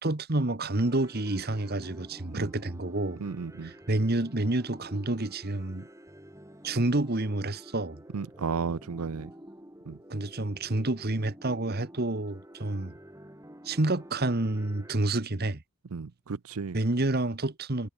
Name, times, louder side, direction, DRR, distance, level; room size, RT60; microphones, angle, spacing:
voice 1, 0.0-3.2 3.6-5.9 6.6-8.0 10.1-12.9 13.6-15.6 16.7-17.9, right 2 dB, 45° right, 1.4 m, -29 dB
sound 1, 0.9-15.0, equal, 15° right, 3.5 m, -49 dB
voice 2, 3.2-3.7 8.1-9.3 9.9-10.0 15.9-16.8, right 5 dB, 85° right, 0.6 m, -34 dB
head